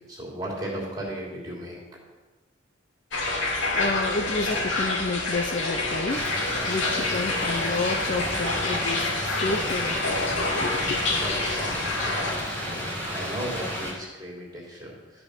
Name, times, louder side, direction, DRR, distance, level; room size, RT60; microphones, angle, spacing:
voice 1, 0.1-1.8 11.2-15.2, right 1 dB, 20° right, -3 dB, 3.0 m, -36 dB
sound 1, 3.1-12.3, left 2 dB, 75° left, 2.3 m, -28 dB
voice 2, 3.7-6.3 6.6-11.0, left 3 dB, 45° left, 5 dB, 0.6 m, -30 dB
sound 2, 6.1-13.9, equal, 10° left, 2.2 m, -32 dB
13.0 x 5.4 x 6.6 m, 1.2 s
head